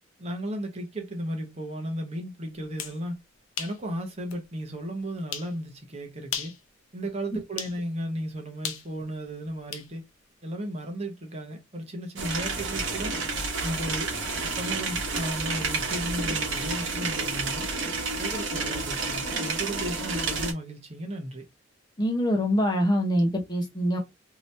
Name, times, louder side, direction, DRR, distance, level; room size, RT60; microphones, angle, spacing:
voice 1, 0.2-3.2 3.6-6.5 6.9-10.0 10.4-13.1 13.6-14.2 14.4-17.7 18.2-21.4, right 1 dB, 30° right, 0.8 m, -35 dB
sound 1, 2.6-3.0 3.6-3.8 4.3-4.4 5.3-5.5 6.2-6.6 7.6-7.8 8.6-9.9, left 8 dB, 80° left, 0.6 m, -35 dB
sound 2, 12.2-20.5, right 3 dB, 60° right, 1.1 m, -30 dB
voice 2, 22.0-24.0, equal, 20° left, 0.7 m, -24 dB
2.9 x 2.7 x 3.1 m
head